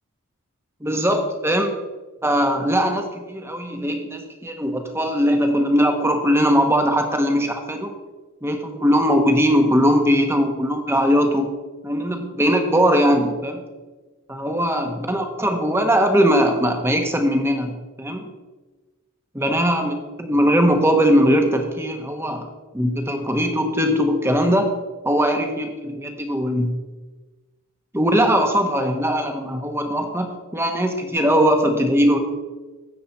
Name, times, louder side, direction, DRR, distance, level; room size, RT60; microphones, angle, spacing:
voice 1, 0.8-1.8 2.2-7.9 8.4-11.5 11.8-13.6 14.3-18.3 19.3-22.5 22.7-24.7 25.0-26.8 27.9-32.2, equal, 10° right, 4 dB, 1.1 m, -20 dB
13.0 x 8.5 x 4.3 m, 1.2 s
head